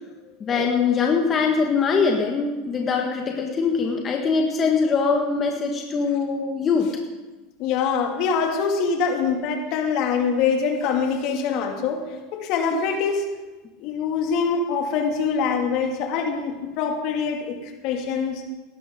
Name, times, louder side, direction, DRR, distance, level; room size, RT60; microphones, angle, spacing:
voice 1, 0.4-6.9, left 5 dB, 30° left, 1 dB, 1.7 m, -22 dB
voice 2, 7.6-12.0 12.3-13.2 13.8-18.4, left 5 dB, 60° left, 3 dB, 2.5 m, -24 dB
17.5 x 12.5 x 3.9 m, 1.2 s
hypercardioid pair, 100°, 0 cm